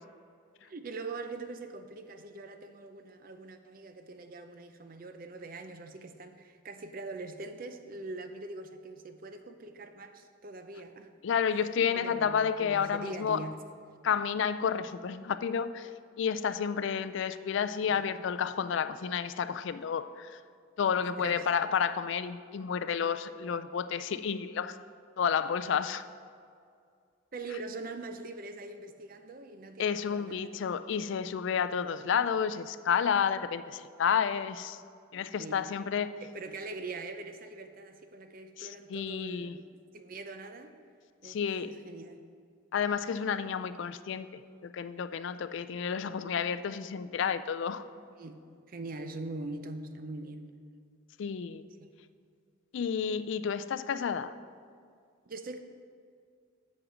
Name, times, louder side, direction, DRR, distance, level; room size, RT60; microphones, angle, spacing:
voice 1, 0.6-11.1 11.9-13.6 17.8-18.0 21.2-21.5 27.3-30.6 35.3-35.6 36.2-39.7 39.9-40.7 41.2-41.4 41.6-42.2 48.2-50.6 51.8-51.9 55.3-55.6, right 3 dB, 40° right, 8 dB, 0.5 m, -43 dB
voice 2, 11.2-13.4 14.0-15.9 16.2-20.4 20.8-24.8 25.2-26.0 29.8-34.8 35.1-36.1 38.6-39.6 41.2-41.8 42.7-47.9 51.2-51.7 52.7-54.3, left 7 dB, 65° left, 13 dB, 0.3 m, -31 dB
7.9 x 7.3 x 4.9 m, 2.3 s
head